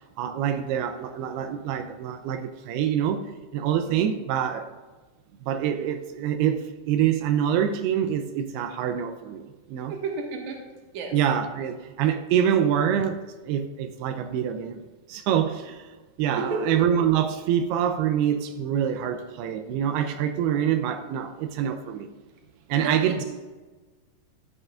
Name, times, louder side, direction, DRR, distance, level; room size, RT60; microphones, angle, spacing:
voice 1, 0.2-3.2 3.5-4.7 5.4-9.9 11.1-14.8 15.1-15.9 16.2-22.1 22.7-23.2, right 9 dB, 85° right, 7 dB, 2.6 m, -25 dB
voice 2, 9.9-10.6 10.9-11.1 16.4-16.6 22.8-23.2, right 5 dB, 60° right, 1 dB, 2.5 m, -31 dB
13.5 x 8.9 x 2.4 m, 1.3 s
omnidirectional pair, 4.4 m